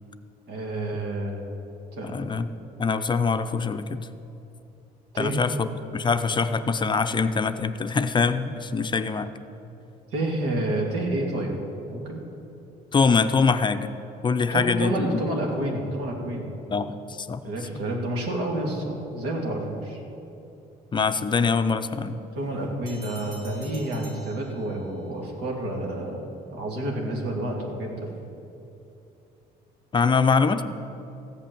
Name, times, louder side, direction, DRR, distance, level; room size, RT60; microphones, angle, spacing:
voice 1, 0.5-1.5 2.0-2.3 5.1-5.4 10.1-11.6 11.8-12.2 14.5-16.6 17.4-20.0 22.4-28.1, right 1 dB, 90° right, 0 dB, 2.3 m, -29 dB
voice 2, 2.0-2.5 2.8-4.0 5.2-5.7 5.9-9.3 12.9-13.9 14.2-15.2 16.7-17.4 20.9-22.2 29.9-30.6, left 5 dB, 25° left, 9 dB, 0.5 m, -23 dB
Bell, 22.9-25.1, equal, 50° right, 2.5 m, -48 dB
14.5 x 5.7 x 8.8 m, 2.8 s
cardioid pair, 110°, 17 cm